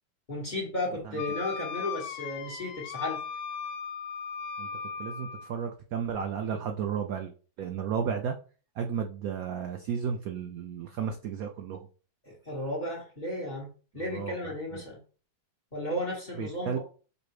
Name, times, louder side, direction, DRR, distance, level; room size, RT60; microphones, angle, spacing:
voice 1, 0.3-3.2 12.3-13.7 13.9-15.0 15.7-16.8, left 1 dB, 30° left, -3 dB, 1.0 m, -34 dB
Wind instrument woodwind instrument, 1.2-5.5, left 6 dB, 90° left, 1.5 m, -37 dB
voice 2, 5.0-7.3 7.6-8.4 8.8-11.8 14.1-14.8 16.4-16.8, right 7 dB, 85° right, 4 dB, 0.7 m, -33 dB
5.1 x 2.1 x 4.7 m, 0.38 s
omnidirectional pair, 2.1 m